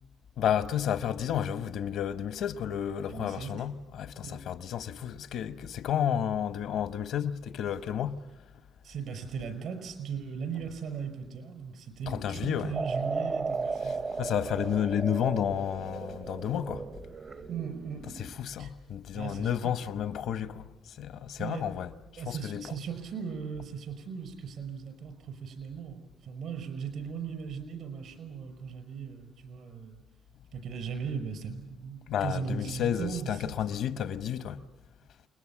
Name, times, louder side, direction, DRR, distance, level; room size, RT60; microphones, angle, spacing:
voice 1, 0.4-8.3 12.1-12.8 13.8-16.9 18.2-22.7 32.1-34.6, left 9 dB, 80° left, 0.9 m, -31 dB
voice 2, 3.1-3.6 4.2-4.4 8.8-14.1 17.5-18.0 18.6-18.7 19.1-19.8 21.4-21.7 22.2-30.0 30.5-33.5, right 6 dB, 75° right, 5.5 m, -38 dB
sound 1, 12.7-18.4, right 4 dB, 40° right, 0.7 m, -35 dB
28.5 x 20.5 x 7.3 m
cardioid pair, 90°, 0 cm